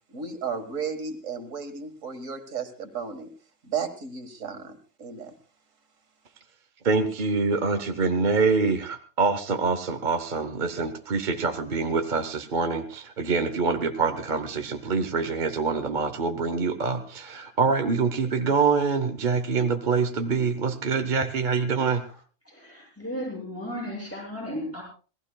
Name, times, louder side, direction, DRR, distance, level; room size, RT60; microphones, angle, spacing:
voice 1, 0.1-3.3 3.6-5.3, right 6 dB, 90° right, 7 dB, 2.1 m, -34 dB
voice 2, 6.8-22.0, right 4 dB, 40° right, 7 dB, 1.1 m, -25 dB
voice 3, 22.5-24.8, equal, 10° left, -4 dB, 7.1 m, -35 dB
27.0 x 17.0 x 2.3 m, 0.37 s
omnidirectional pair, 1.3 m